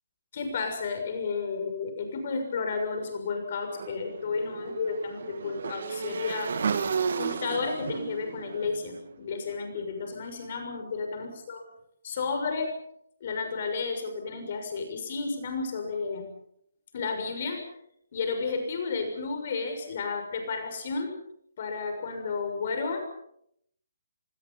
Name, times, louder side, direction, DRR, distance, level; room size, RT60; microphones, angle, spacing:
voice 1, 0.3-6.6 7.1-11.6 12.0-12.7 13.2-16.3 16.9-17.7 18.1-21.2 21.6-23.0, left 4 dB, 40° left, 5 dB, 6.6 m, -32 dB
Motorcycle / Engine, 3.7-9.8, right 5 dB, 60° right, 2.2 m, -33 dB
29.5 x 20.0 x 5.8 m, 0.73 s
hypercardioid pair, 165°, 0 cm